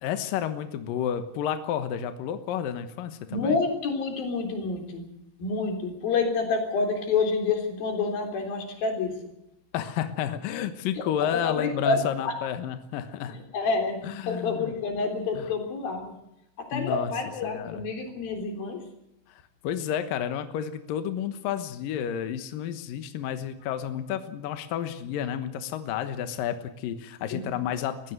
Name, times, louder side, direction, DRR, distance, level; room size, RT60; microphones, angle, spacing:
voice 1, 0.0-3.6 9.7-13.4 14.1-14.7 15.4-15.5 16.7-17.1 17.4-17.8 19.6-28.1, left 9 dB, 80° left, 10 dB, 2.0 m, -31 dB
voice 2, 3.3-5.1 5.4-9.2 10.9-12.3 13.3-16.2 16.6-18.8 27.3-27.4, left 4 dB, 50° left, 4 dB, 5.0 m, -28 dB
21.5 x 15.5 x 7.9 m, 0.83 s
omnidirectional pair, 5.9 m